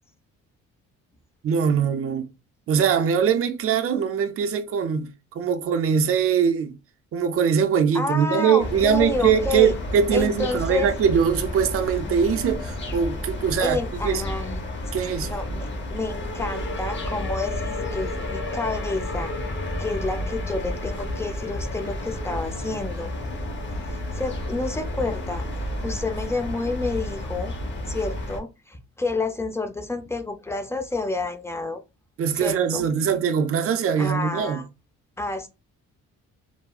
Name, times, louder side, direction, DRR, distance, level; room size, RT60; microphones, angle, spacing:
voice 1, 1.4-2.3 2.7-5.1 5.3-6.8 7.1-13.8 14.0-14.2 14.9-15.3 32.2-34.6, right 7 dB, 50° right, 0.5 m, -22 dB
voice 2, 7.9-9.8 10.1-10.9 13.6-14.6 15.2-19.3 19.8-23.1 23.9-25.4 25.8-27.6 27.9-31.8 32.3-32.9 34.0-34.6 35.2-35.5, left 2 dB, 10° left, 0.5 m, -29 dB
sound 1, 8.6-28.4, left 1 dB, 40° left, 0.8 m, -31 dB
3.5 x 2.0 x 2.3 m
cardioid pair, 90°, 30 cm